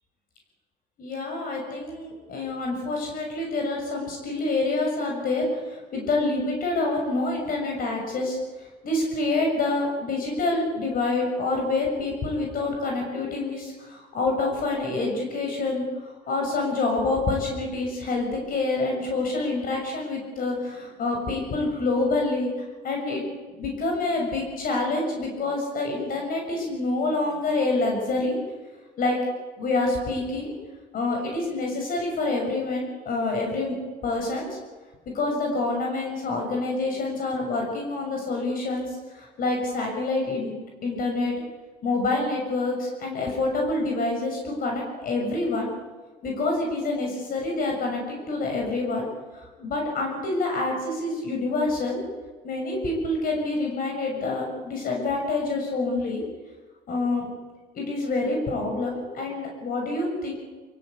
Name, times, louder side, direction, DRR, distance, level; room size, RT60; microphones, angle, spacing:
voice 1, 1.0-22.5 22.8-23.2 23.6-28.4 29.0-29.2 29.6-30.5 30.9-33.7 34.0-34.6 35.1-40.5 40.8-41.3 41.8-45.7 46.2-52.0 52.4-56.2 56.9-57.3 57.7-60.3, left 2 dB, 55° left, 0 dB, 6.8 m, -27 dB
25.0 x 16.5 x 8.4 m, 1.3 s
cardioid pair, 110°, 17 cm